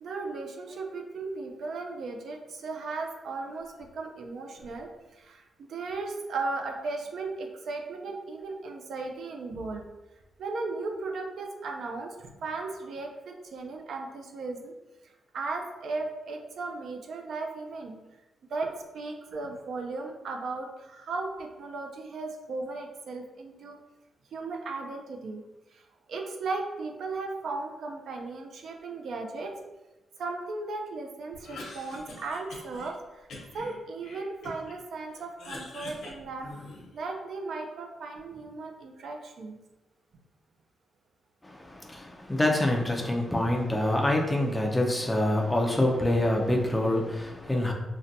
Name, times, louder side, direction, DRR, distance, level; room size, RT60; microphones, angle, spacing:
voice 1, 0.0-9.8 10.4-14.7 15.0-18.0 18.5-23.8 24.3-25.4 25.7-25.8 26.1-29.5 30.2-33.3 33.5-36.5 36.9-39.6, right 3 dB, 60° right, 3 dB, 0.4 m, -36 dB
Cough, 31.3-32.9 33.3-34.8 35.1-37.0, left 2 dB, 90° left, 0.8 m, -44 dB
voice 2, 41.4-47.7, left 1 dB, 10° left, 0 dB, 0.3 m, -26 dB
3.8 x 2.2 x 2.6 m, 1.0 s
wide cardioid pair, 180°, 0 cm